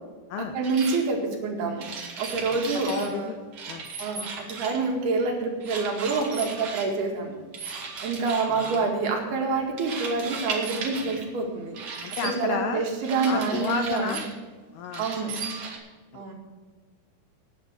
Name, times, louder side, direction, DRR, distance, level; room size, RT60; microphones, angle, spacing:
voice 1, 0.4-1.9 2.2-3.3 4.0-7.4 8.0-11.8 12.2-14.2 15.0-15.3 16.1-16.3, right 4 dB, 65° right, 1 dB, 3.8 m, -27 dB
sound 1, 0.6-1.0 1.8-3.1 3.5-4.9 5.6-6.9 7.5-8.8 9.8-11.3 11.7-12.3 13.0-14.3 14.9-15.8, right 4 dB, 45° right, 2.1 m, -36 dB
voice 2, 2.5-3.4 3.7-3.9 8.5-8.9 12.0-12.9 13.3-14.2 14.7-15.1 16.1-16.3, left 7 dB, 80° left, 7 dB, 2.2 m, -32 dB
9.6 x 9.3 x 7.8 m, 1.4 s
omnidirectional pair, 5.0 m